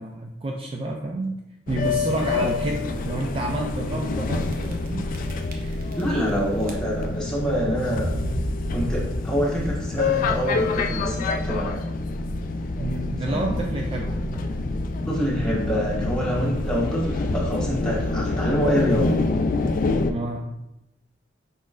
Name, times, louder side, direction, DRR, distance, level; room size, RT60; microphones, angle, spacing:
voice 1, 0.0-1.4 1.7-5.2 5.5-5.8 12.8-14.6 20.1-20.6, right 2 dB, 30° right, 1 dB, 0.4 m, -30 dB
sound 1, 1.7-20.1, left 3 dB, 45° left, 0.3 m, -27 dB
sound 2, 2.1-2.5 3.1-3.2 3.5-3.6 4.5-4.9 5.1-6.3 6.6-7.1 7.8-9.8, equal, 50° right, 0.7 m, -32 dB
voice 2, 5.9-8.2 8.7-11.8 13.3-13.6 15.1-19.1, equal, 5° left, -7 dB, 1.4 m, -26 dB
5.2 x 4.2 x 2.4 m, 0.86 s
head